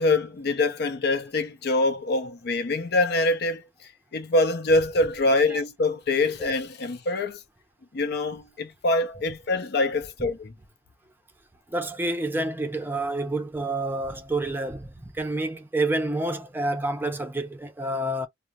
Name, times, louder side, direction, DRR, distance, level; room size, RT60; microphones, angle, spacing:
voice 1, 0.0-3.6 4.1-7.4 7.9-10.5, left 2 dB, 60° left, 0.6 m, -24 dB
voice 2, 11.7-18.3, right 2 dB, 10° right, 0.5 m, -28 dB
2.4 x 2.1 x 2.8 m
head